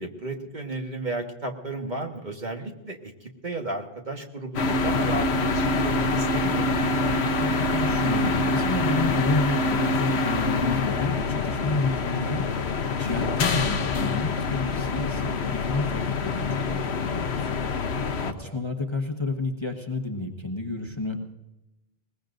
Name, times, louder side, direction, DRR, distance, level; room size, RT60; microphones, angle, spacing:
voice 1, 0.0-6.7 18.4-18.6, right 2 dB, 40° right, 2 dB, 1.6 m, -34 dB
sound 1, 4.5-18.3, left 3 dB, 60° left, 1.2 m, -25 dB
voice 2, 7.2-12.6 13.0-21.2, left 2 dB, 25° left, 2 dB, 1.3 m, -31 dB
22.0 x 20.0 x 2.6 m, 0.98 s
omnidirectional pair, 1.2 m